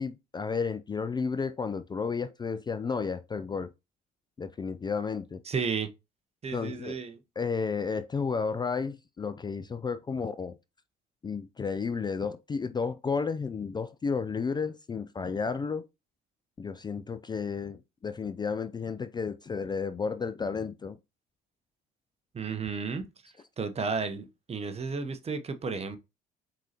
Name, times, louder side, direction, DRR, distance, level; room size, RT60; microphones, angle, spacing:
voice 1, 0.0-3.7 4.4-5.4 6.5-7.0 7.4-10.6 11.2-15.9 16.6-21.0, left 5 dB, 25° left, 0.4 m, -32 dB
voice 2, 5.5-5.9 6.4-7.2 22.3-23.1 23.6-26.0, right 5 dB, 35° right, 0.8 m, -33 dB
4.7 x 3.8 x 2.8 m
hypercardioid pair, 65°, 19 cm